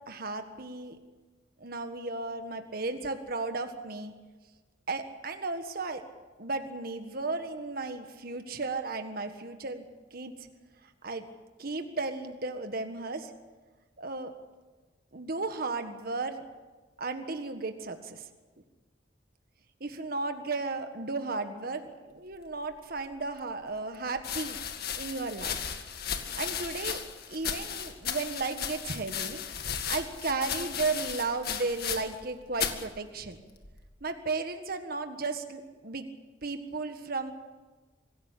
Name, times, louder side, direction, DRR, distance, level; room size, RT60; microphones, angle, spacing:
voice 1, 0.1-1.0 1.6-4.1 4.9-6.0 6.4-10.5 11.0-11.2 11.6-13.3 14.0-14.3 15.1-16.4 17.0-18.3 19.8-24.6 25.0-25.6 26.3-27.0 27.3-29.4 29.9-33.4 34.0-36.1 36.4-37.3, right 3 dB, 55° right, 7 dB, 1.6 m, -34 dB
sound 1, 23.1-23.2 24.2-32.3 32.5-32.9 33.6-34.0, left 8 dB, 55° left, 2.0 m, -35 dB
25.0 x 16.0 x 8.4 m, 1.3 s
head